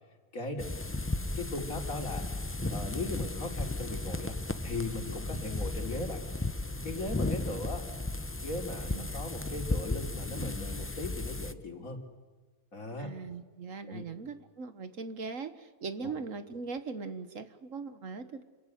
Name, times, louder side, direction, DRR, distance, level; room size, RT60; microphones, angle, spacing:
voice 1, 0.3-0.7 1.4-2.2 2.7-6.2 6.8-7.8 8.4-12.0 12.7-13.1 13.9-14.0 16.0-16.1, left 2 dB, 65° left, 3 dB, 3.8 m, -38 dB
sound 1, 0.6-11.5, left 2 dB, 15° left, 0.5 m, -35 dB
voice 2, 8.8-9.2 13.0-18.4, right 4 dB, 60° right, 10 dB, 1.6 m, -40 dB
29.0 x 22.0 x 9.4 m, 1.3 s
omnidirectional pair, 1.6 m